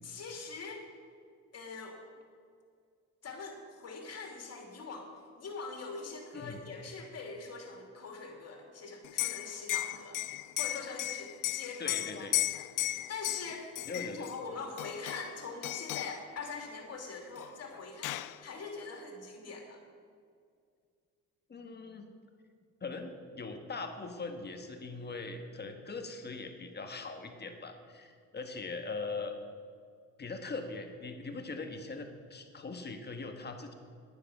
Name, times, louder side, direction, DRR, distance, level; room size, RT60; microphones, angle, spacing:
voice 1, 0.0-0.9 1.5-2.0 3.2-5.1 5.4-10.2 10.6-19.8, left 4 dB, 55° left, 2 dB, 2.6 m, -43 dB
Liquid, 9.0-14.3 14.8-15.3 15.6-16.2 17.4-17.5 17.7-18.4, left 17 dB, 85° left, 0.5 m, -35 dB
voice 2, 11.8-12.4 13.8-14.3 21.5-22.1 22.8-29.3 30.2-33.7, left 3 dB, 35° left, 5 dB, 1.5 m, -41 dB
10.5 x 9.7 x 6.0 m, 2.2 s
cardioid pair, 90°, 30 cm